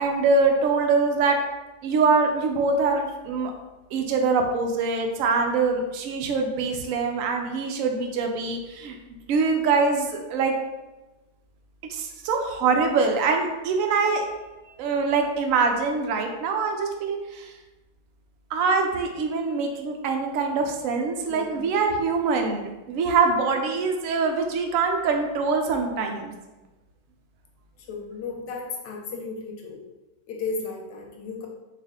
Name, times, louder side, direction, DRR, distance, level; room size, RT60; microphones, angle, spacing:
voice 1, 0.0-1.4 1.8-3.5 3.9-9.0 9.3-10.5 11.9-14.2 14.8-17.5 18.5-26.3, right 4 dB, 65° right, 3 dB, 0.8 m, -24 dB
voice 2, 21.3-21.7 27.9-29.8 30.3-31.5, left 4 dB, 85° left, 1 dB, 1.4 m, -34 dB
4.5 x 2.6 x 3.6 m, 1.1 s
omnidirectional pair, 1.9 m